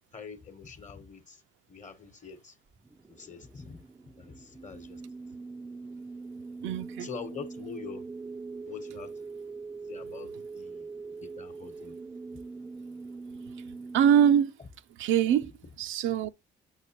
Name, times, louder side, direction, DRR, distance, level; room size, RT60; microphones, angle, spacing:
voice 1, 0.1-1.4 1.7-2.6 3.1-3.8 4.2-5.0 7.0-8.1 8.7-9.1 9.9-10.9 11.2-11.9, left 6 dB, 40° left, 1.0 m, -44 dB
sound 1, 2.7-14.5, right 4 dB, 10° right, 0.3 m, -42 dB
voice 2, 6.6-7.1 13.9-14.5 14.9-15.5 15.8-16.3, right 9 dB, 80° right, 0.4 m, -23 dB
6.5 x 6.4 x 2.8 m
cardioid pair, 90°, 20 cm